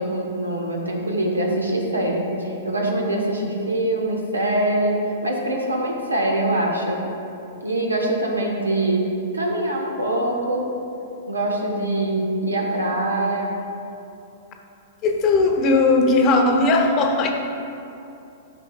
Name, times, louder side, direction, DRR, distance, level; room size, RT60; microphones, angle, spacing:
voice 1, 0.0-7.0 7.6-10.7 11.3-13.6, right 1 dB, 80° right, 0 dB, 1.3 m, -23 dB
voice 2, 15.0-17.3, left 3 dB, 30° left, 3 dB, 0.9 m, -18 dB
13.0 x 6.0 x 2.4 m, 2.8 s
figure-of-eight pair, 105°, 0 cm